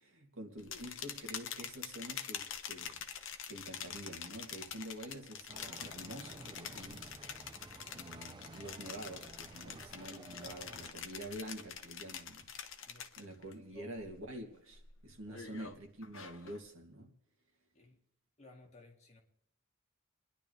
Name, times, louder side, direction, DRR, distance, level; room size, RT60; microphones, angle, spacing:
voice 1, 0.0-3.0 3.5-7.1 7.9-12.5 13.2-17.1, right 1 dB, 70° right, 2 dB, 2.6 m, -47 dB
sound 1, 0.6-13.5 13.9-14.3 14.7-16.6, left 8 dB, 65° left, 1.1 m, -46 dB
voice 2, 0.7-1.2 12.8-13.1 13.7-14.1 15.3-15.5 17.7-18.0 18.4-19.2, left 2 dB, 35° left, 1 dB, 2.3 m, -57 dB
sound 2, 5.5-10.9, right 3 dB, 20° right, 0.5 m, -53 dB
29.5 x 11.0 x 3.3 m, 0.78 s
head